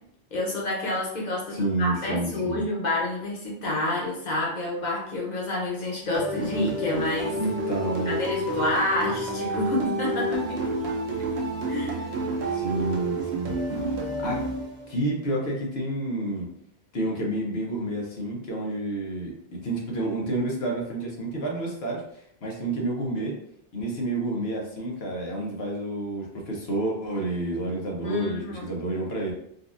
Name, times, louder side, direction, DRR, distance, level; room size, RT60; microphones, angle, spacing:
voice 1, 0.3-7.4 8.1-10.6 11.7-12.1 28.0-28.7, left 1 dB, 45° left, -3 dB, 1.1 m, -28 dB
voice 2, 1.5-2.6 7.4-8.2 12.5-13.6 14.2-14.4 14.9-16.5 16.9-23.4 23.7-29.3, right 1 dB, 80° left, -2 dB, 1.2 m, -29 dB
sound 1, 6.1-15.1, right 1 dB, 90° right, 1.0 m, -29 dB
4.0 x 2.4 x 2.5 m, 0.74 s
omnidirectional pair, 1.0 m